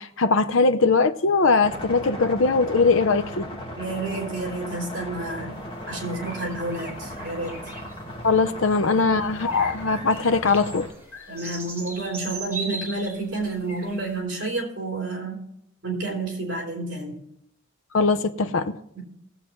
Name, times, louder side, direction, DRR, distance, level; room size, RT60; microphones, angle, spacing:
voice 1, 0.0-3.5 8.2-11.3 17.9-18.8, left 4 dB, 70° left, 0.7 m, -21 dB
sound 1, 1.6-10.9, equal, 25° left, 1.8 m, -37 dB
voice 2, 3.7-5.6 5.9-7.6 9.0-9.1 11.3-15.5 15.8-17.2 18.9-19.0, right 2 dB, 55° right, 3.5 m, -30 dB
sound 2, 5.6-14.2, right 2 dB, 10° right, 2.3 m, -40 dB
20.5 x 7.8 x 3.1 m
head